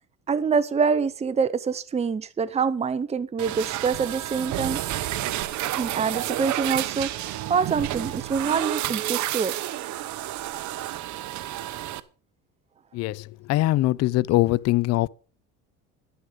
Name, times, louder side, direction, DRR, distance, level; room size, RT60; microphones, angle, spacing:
voice 1, 0.3-4.8 5.7-7.1 7.5-9.5, right 5 dB, 20° right, 0.8 m, -25 dB
sound 1, 3.4-12.0, right 14 dB, 55° right, 1.0 m, -30 dB
voice 2, 12.9-15.1, left 17 dB, 50° left, 0.5 m, -22 dB
11.0 x 11.0 x 5.2 m
supercardioid pair, 110°, 35 cm